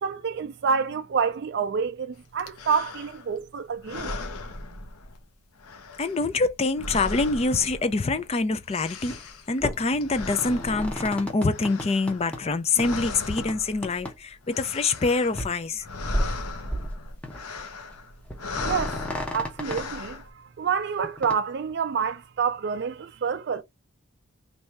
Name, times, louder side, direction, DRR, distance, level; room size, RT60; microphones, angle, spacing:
voice 1, 0.0-4.2 18.6-19.0 19.3-23.6, right 6 dB, 50° right, 0.3 m, -28 dB
sound 1, 2.4-3.4 3.8-5.3 5.6-8.3 8.5-12.5 12.8-14.0 14.3-15.4 15.7-20.3, left 3 dB, 85° left, 0.8 m, -37 dB
voice 2, 6.0-9.2 9.5-15.9, left 3 dB, 30° left, 0.4 m, -25 dB
sound 2, 9.0-9.3 9.6-12.4 12.8-13.0 13.4-13.5 13.8-14.1 14.4-14.5 15.0-15.1 15.3-15.6 16.0-16.9 17.2-17.7 17.9-18.0 18.3-19.8 21.0-21.4, equal, 5° left, 0.8 m, -33 dB
3.2 x 2.7 x 4.5 m
head